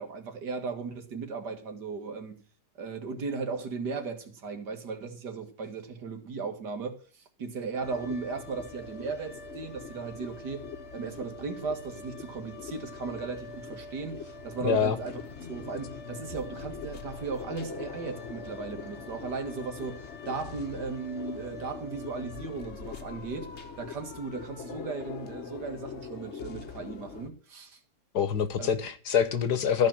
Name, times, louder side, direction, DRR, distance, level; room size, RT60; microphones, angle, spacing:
voice 1, 0.0-2.4 2.8-10.7 10.9-15.2 15.5-23.5 23.8-27.8 28.6-28.7, right 4 dB, 80° right, 2.4 m, -36 dB
sound 1, 7.8-27.3, left 5 dB, 45° left, 1.2 m, -42 dB
voice 2, 14.6-15.0 28.1-29.9, left 7 dB, 75° left, 1.7 m, -25 dB
14.0 x 5.4 x 8.8 m
omnidirectional pair, 1.8 m